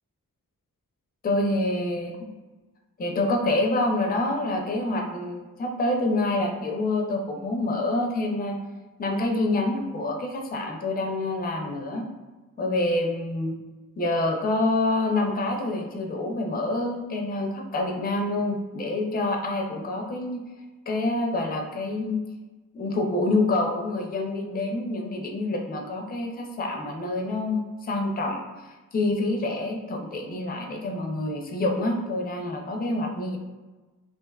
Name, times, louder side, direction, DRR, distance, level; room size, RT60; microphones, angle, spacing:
voice 1, 1.2-2.3 3.0-8.6 9.0-12.0 12.6-13.6 14.0-20.4 20.9-22.2 22.7-33.4, left 2 dB, 25° left, 2 dB, 0.4 m, -27 dB
2.4 x 2.2 x 2.2 m, 1.2 s
cardioid pair, 55°, 34 cm